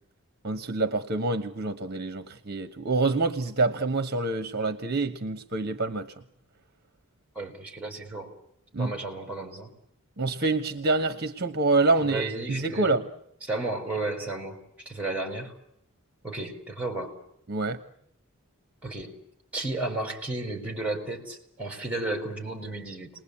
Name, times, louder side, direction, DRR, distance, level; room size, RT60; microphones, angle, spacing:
voice 1, 0.4-6.1 8.7-8.9 10.2-13.0 17.5-17.8, right 3 dB, 45° right, 9 dB, 1.3 m, -26 dB
voice 2, 7.4-8.3 8.8-9.7 12.0-13.0 13.5-14.6 14.9-15.5 16.2-17.2 18.8-19.1 19.5-23.1, right 2 dB, 5° right, 4 dB, 5.8 m, -33 dB
29.5 x 20.5 x 8.6 m, 0.76 s
head